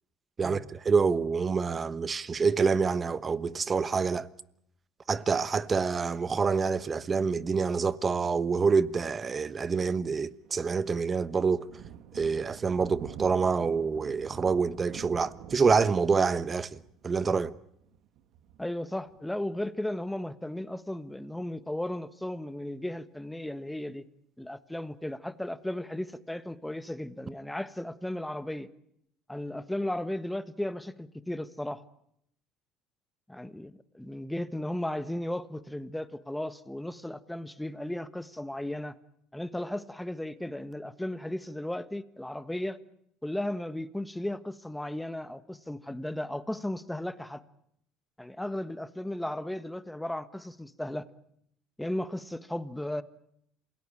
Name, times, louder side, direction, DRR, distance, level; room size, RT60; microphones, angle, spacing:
voice 1, 0.4-4.3 5.1-11.7 12.1-17.5, right 5 dB, 30° right, 1.1 m, -27 dB
Thunder, 10.4-19.6, right 9 dB, 65° right, 1.8 m, -48 dB
voice 2, 18.6-24.0 24.4-28.7 29.3-31.8 33.3-38.9 39.3-42.8 43.2-47.4 48.2-51.1 51.8-53.0, left 1 dB, 5° left, 1.4 m, -35 dB
27.5 x 18.0 x 9.0 m
supercardioid pair, 95°, 0 cm